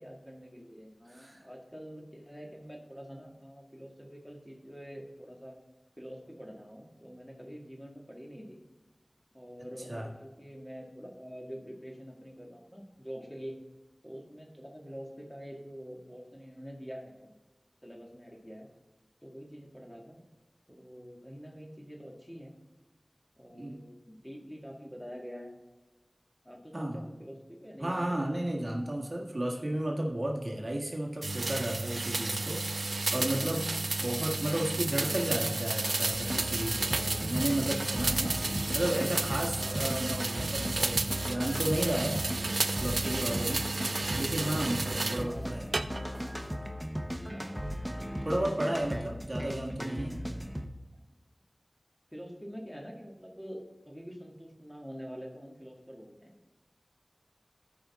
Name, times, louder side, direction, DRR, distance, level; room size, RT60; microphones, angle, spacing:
voice 1, 0.0-5.6 6.0-8.6 9.3-13.6 14.0-17.3 17.8-18.7 19.2-20.2 20.7-22.5 23.4-25.5 26.4-28.2 34.0-34.3 44.3-45.8 47.3-47.5 49.0-49.2 50.9-51.1 52.1-56.3, equal, 10° left, -1 dB, 2.1 m, -46 dB
voice 2, 1.1-1.4 9.9-10.0 23.5-23.8 26.7-27.1 27.8-33.7 34.0-42.2 42.7-43.6 44.2-45.6 48.2-50.2, right 1 dB, 45° right, -1 dB, 1.6 m, -33 dB
sound 1, 31.2-45.3 45.7-46.3, right 3 dB, 85° right, 0.4 m, -32 dB
sound 2, 36.1-50.7, equal, 10° right, 0.9 m, -37 dB
14.0 x 5.2 x 3.7 m, 1.1 s
wide cardioid pair, 50°, 0 cm